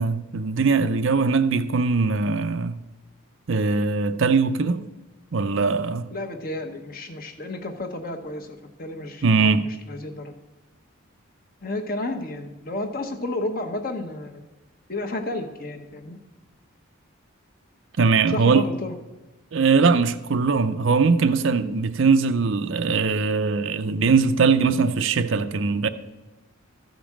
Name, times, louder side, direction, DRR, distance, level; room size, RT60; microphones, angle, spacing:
voice 1, 0.0-2.8 3.5-4.8 5.3-6.1 9.2-9.6 18.0-18.6 19.5-25.9, right 4 dB, 65° right, 0.5 m, -21 dB
voice 2, 6.1-10.3 11.6-14.4 14.9-16.2 18.3-18.9, left 2 dB, 40° left, 1.1 m, -32 dB
13.5 x 5.2 x 7.3 m
head